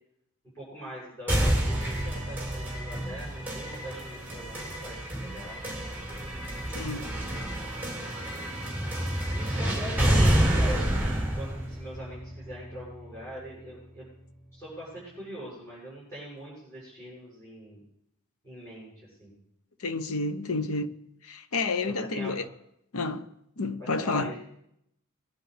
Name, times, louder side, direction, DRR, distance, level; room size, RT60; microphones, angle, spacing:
voice 1, 0.5-5.6 6.9-7.7 9.3-14.0 14.5-17.8 18.4-19.4 21.8-22.4 23.8-24.4, right 1 dB, 15° left, 7.1 m, -42 dB
sound 1, 1.3-13.2, right 1 dB, 10° right, 2.4 m, -29 dB
voice 2, 6.7-7.1 19.8-20.9 21.2-22.5 22.9-23.3 23.6-24.3, left 3 dB, 80° left, 0.9 m, -30 dB
22.5 x 10.5 x 3.4 m
head